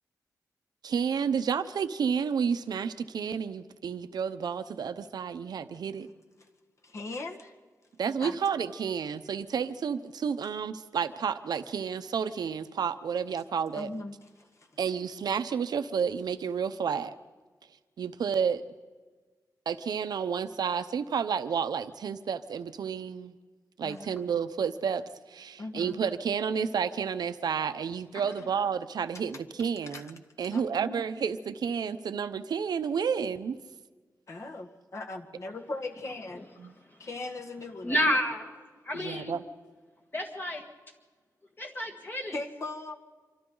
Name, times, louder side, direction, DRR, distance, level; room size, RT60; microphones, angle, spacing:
voice 1, 0.8-6.1 8.0-13.9 14.8-17.2 18.0-18.6 19.7-23.3 23.8-33.6 36.6-36.7 38.9-39.4, right 7 dB, 85° right, 11 dB, 0.8 m, -31 dB
voice 2, 6.8-7.5 8.2-8.4 13.7-14.7 23.8-24.1 25.6-26.0 28.4-28.5 29.9-30.0 30.5-31.0 34.3-36.5 37.0-38.0 42.3-42.9, left 2 dB, 45° left, 4 dB, 1.8 m, -39 dB
voice 3, 37.8-38.5 38.9-39.4 40.1-40.6 41.6-42.4, left 1 dB, 30° left, 2 dB, 1.9 m, -30 dB
27.0 x 24.5 x 4.0 m, 1.4 s
wide cardioid pair, 130°, 7 cm